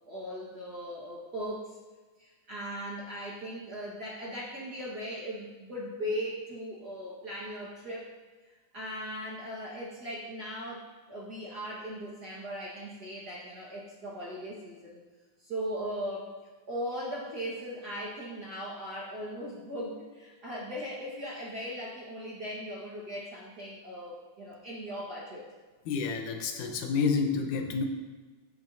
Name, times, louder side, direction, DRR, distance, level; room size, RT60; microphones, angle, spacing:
voice 1, 0.0-1.8 2.2-8.1 8.7-15.0 15.4-16.3 16.7-25.5, equal, 45° right, -6 dB, 1.5 m, -38 dB
voice 2, 25.9-27.8, left 5 dB, 80° left, 4 dB, 2.4 m, -29 dB
16.5 x 7.4 x 2.7 m, 1.3 s
omnidirectional pair, 3.6 m